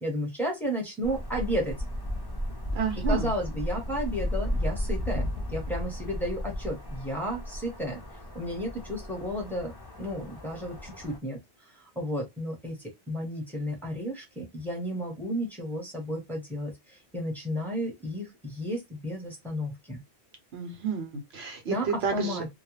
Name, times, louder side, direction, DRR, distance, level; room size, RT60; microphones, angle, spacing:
voice 1, 0.0-1.7 3.1-8.0 8.3-9.7 10.0-11.4 12.0-12.7 13.1-16.7 17.1-20.0 21.7-21.9 22.1-22.5, equal, ahead, 0.9 m, -32 dB
sound 1, 1.0-11.2, equal, 30° left, 0.4 m, -34 dB
voice 2, 2.7-3.3 20.5-22.4, right 5 dB, 70° right, 1.0 m, -31 dB
2.3 x 2.1 x 3.0 m
omnidirectional pair, 1.1 m